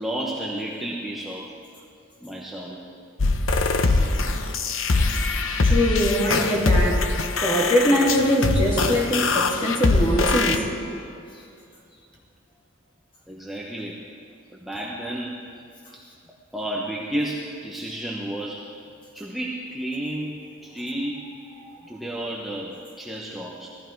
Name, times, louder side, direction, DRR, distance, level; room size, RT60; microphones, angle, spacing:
voice 1, 0.0-1.5 2.2-2.8 13.3-14.0 14.6-15.4 16.5-18.6 19.1-20.3 20.6-21.3 21.9-23.7, right 1 dB, ahead, -5 dB, 1.0 m, -31 dB
sound 1, 3.2-10.6, left 3 dB, 75° left, 0.9 m, -22 dB
voice 2, 5.6-7.1 7.4-10.6, equal, 25° left, -3 dB, 2.4 m, -22 dB
16.5 x 14.0 x 4.6 m, 2.5 s
head